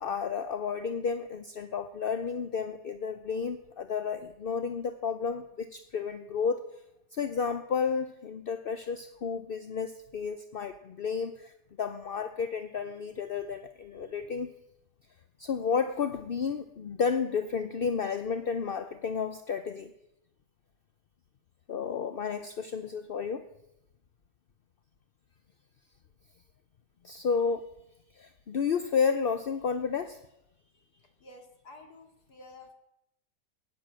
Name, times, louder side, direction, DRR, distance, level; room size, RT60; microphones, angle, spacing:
voice 1, 0.0-6.6 7.1-14.5 15.4-19.9 21.7-23.4 27.0-27.6 28.1-30.2, left 6 dB, 50° left, 10 dB, 0.7 m, -32 dB
voice 2, 31.2-32.7, left 2 dB, 70° left, 4 dB, 2.9 m, -51 dB
16.5 x 10.5 x 7.5 m, 0.85 s
omnidirectional pair, 1.8 m